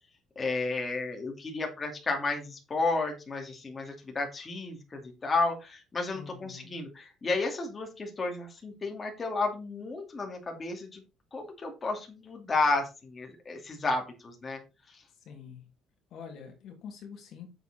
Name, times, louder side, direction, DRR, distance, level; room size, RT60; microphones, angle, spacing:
voice 1, 0.4-11.0 11.3-14.6 14.9-15.0, left 3 dB, 20° left, 1 dB, 2.6 m, -32 dB
voice 2, 6.1-6.8 15.2-15.7 16.1-17.5, left 7 dB, 55° left, 4 dB, 2.8 m, -45 dB
7.9 x 7.2 x 4.3 m, 0.28 s
cardioid pair, 160°, 0 cm